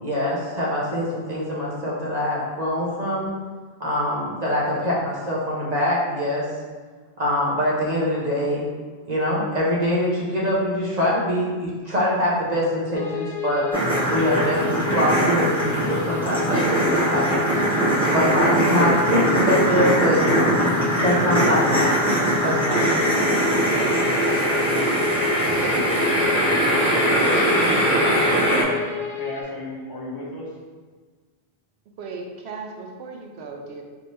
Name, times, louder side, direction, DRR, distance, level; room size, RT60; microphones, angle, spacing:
voice 1, 0.0-3.3 3.8-6.4 7.2-8.6 9.1-13.6 14.1-17.4 18.1-20.2 21.0-21.9 22.4-23.1, equal, 40° right, -6 dB, 1.0 m, -24 dB
sound 1, 12.9-29.4, left 8 dB, 60° left, 1.0 m, -31 dB
sound 2, 13.7-28.6, right 1 dB, 5° left, 1.0 m, -21 dB
voice 2, 25.4-27.6 28.3-30.5, left 2 dB, 25° left, -5 dB, 0.6 m, -36 dB
voice 3, 32.0-33.8, right 4 dB, 75° right, 2 dB, 0.9 m, -36 dB
4.5 x 3.2 x 2.8 m, 1.4 s
omnidirectional pair, 1.1 m